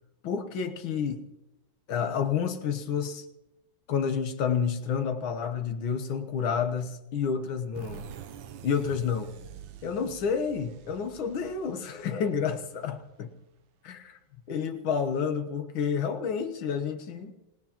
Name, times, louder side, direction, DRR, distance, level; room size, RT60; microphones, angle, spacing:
voice 1, 0.2-1.2 1.9-3.3 3.9-8.1 8.6-9.3 9.8-13.3 13.8-14.2 14.5-17.3, left 6 dB, 75° left, 7 dB, 1.9 m, -29 dB
sound 1, 7.7-13.3, right 8 dB, 70° right, 1.5 m, -47 dB
27.5 x 17.5 x 3.0 m, 0.96 s
omnidirectional pair, 2.3 m